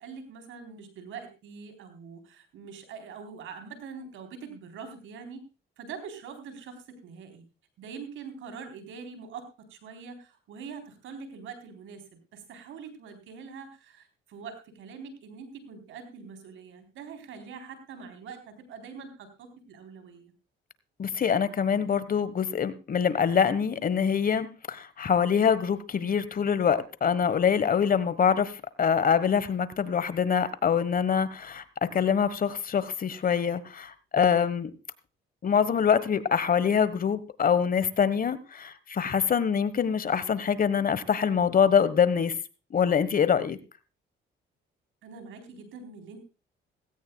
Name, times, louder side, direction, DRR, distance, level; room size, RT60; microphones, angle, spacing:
voice 1, 0.0-5.4 5.8-7.5 7.8-9.4 9.7-20.3 45.0-46.2, right 5 dB, 80° right, 3.9 m, -44 dB
voice 2, 21.0-28.5 28.8-31.6 31.9-34.7 35.4-42.3 42.7-43.6, left 7 dB, 45° left, 1.3 m, -25 dB
17.5 x 16.5 x 2.3 m
cardioid pair, 90°, 20 cm